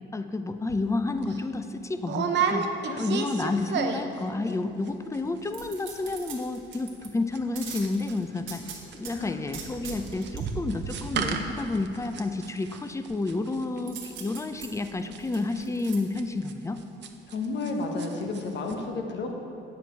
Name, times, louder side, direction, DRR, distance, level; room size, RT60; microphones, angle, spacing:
voice 1, 0.1-2.7 3.0-8.6 8.9-16.8, left 2 dB, 15° left, 9 dB, 0.5 m, -30 dB
sound 1, 0.7-0.8 1.2-1.4 2.0-4.2 4.5-4.9 5.1-5.2 5.4-5.8 6.1-17.7 18.0-18.4 18.7-18.8, right 6 dB, 65° right, 0.8 m, -32 dB
sound 2, 5.5-7.1 7.6-9.1 9.5-10.4 13.9-16.0 16.4-16.5, right 7 dB, 85° right, 1.5 m, -41 dB
voice 2, 9.1-9.5 17.3-19.3, left 3 dB, 60° left, 2 dB, 1.3 m, -32 dB
9.2 x 7.8 x 4.6 m, 2.8 s
cardioid pair, 90°, 20 cm